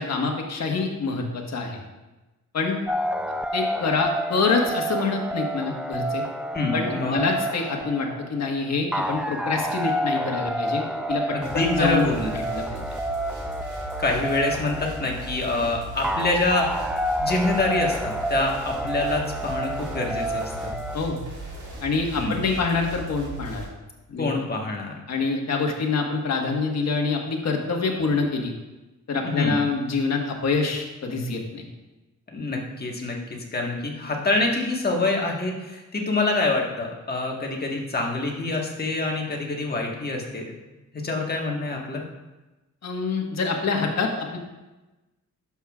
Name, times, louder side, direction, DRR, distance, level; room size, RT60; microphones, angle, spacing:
voice 1, 0.0-1.8 2.5-2.8 3.5-6.2 6.7-10.8 11.1-11.2 11.5-12.1 12.5-12.8 20.9-21.2 21.8-23.6 24.1-24.3 25.1-28.5 29.1-31.7 42.8-44.4, left 4 dB, 60° left, 1 dB, 1.4 m, -26 dB
sound 1, 2.9-21.0, right 1 dB, 5° right, 0.3 m, -29 dB
voice 2, 6.5-7.2 11.3-12.3 14.0-16.7 17.2-20.8 22.1-22.4 24.2-25.0 29.2-29.6 32.3-33.2 33.5-40.5 40.9-42.0, left 2 dB, 30° left, 0 dB, 1.4 m, -26 dB
sound 2, 11.4-23.7, right 1 dB, 75° right, 2.2 m, -37 dB
11.0 x 7.1 x 2.4 m, 1.1 s
cardioid pair, 100°, 30 cm